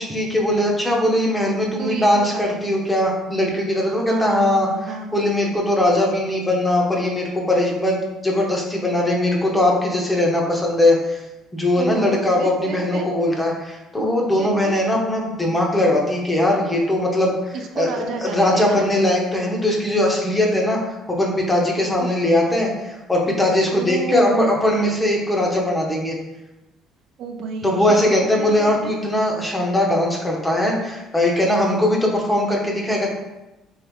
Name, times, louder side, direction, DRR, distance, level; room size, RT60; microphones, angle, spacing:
voice 1, 0.0-4.7 5.1-8.0 8.2-11.2 11.5-17.9 18.2-26.2 27.6-33.1, left 1 dB, 10° left, -1 dB, 0.8 m, -20 dB
voice 2, 1.8-2.7 4.1-5.1 11.7-13.1 14.4-14.8 17.5-18.9 22.0-22.2 23.7-24.5 27.2-28.9, right 5 dB, 60° right, 3 dB, 0.4 m, -30 dB
3.2 x 3.1 x 3.5 m, 1.0 s
cardioid pair, 115°, 0 cm